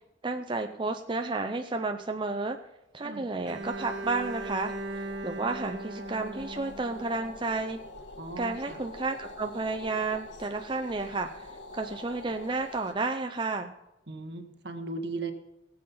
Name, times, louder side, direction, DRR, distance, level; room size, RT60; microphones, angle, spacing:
voice 1, 0.2-2.6 2.9-7.8 8.4-13.7, right 3 dB, 25° right, 5 dB, 0.6 m, -32 dB
Bowed string instrument, 3.5-7.5, right 2 dB, 80° right, 0.9 m, -39 dB
sound 1, 3.6-12.9, left 2 dB, 70° left, 1.5 m, -45 dB
voice 2, 8.2-8.8 14.1-15.3, right 3 dB, 65° right, 6 dB, 1.6 m, -37 dB
18.0 x 7.8 x 5.5 m, 0.95 s
head